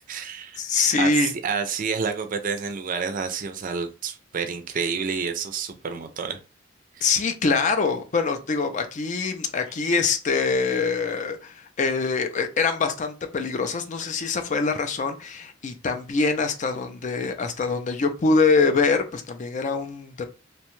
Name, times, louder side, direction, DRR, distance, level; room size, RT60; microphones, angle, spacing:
voice 1, 0.0-0.6 1.0-6.4 7.0-7.1, right 5 dB, 45° right, 0.4 m, -29 dB
voice 2, 0.6-1.3 7.0-20.2, left 4 dB, 40° left, 0.4 m, -24 dB
2.7 x 2.2 x 3.0 m
head